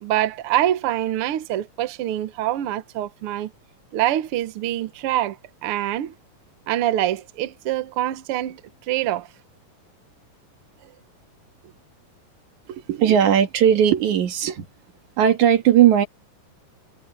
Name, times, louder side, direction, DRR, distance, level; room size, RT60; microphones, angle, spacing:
voice 1, 0.0-3.5 3.9-5.4 5.6-6.1 6.7-8.6 8.9-9.3, right 13 dB, 85° right, 1.2 m, -25 dB
voice 2, 12.7-14.7 15.2-16.1, right 9 dB, 60° right, 3.1 m, -17 dB
omnidirectional pair, 4.0 m